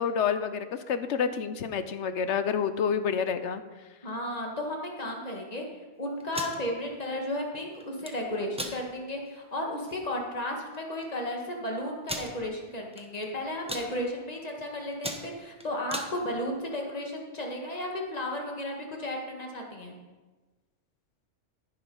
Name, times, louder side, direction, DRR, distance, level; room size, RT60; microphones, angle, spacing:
voice 1, 0.0-3.6, left 7 dB, 70° left, 11 dB, 1.0 m, -28 dB
voice 2, 4.0-5.6 6.0-19.9, left 1 dB, 30° left, 0 dB, 1.8 m, -34 dB
sound 1, 6.2-6.6 7.8-8.1 8.5-8.8 9.3-9.4 9.7-10.0 10.7-10.8 11.0-11.1 12.1-12.3 12.9-13.2 13.5-13.9 14.4-14.6 14.9-16.1, right 1 dB, 5° right, 1.0 m, -36 dB
14.5 x 6.3 x 5.4 m, 1.3 s
omnidirectional pair, 1.3 m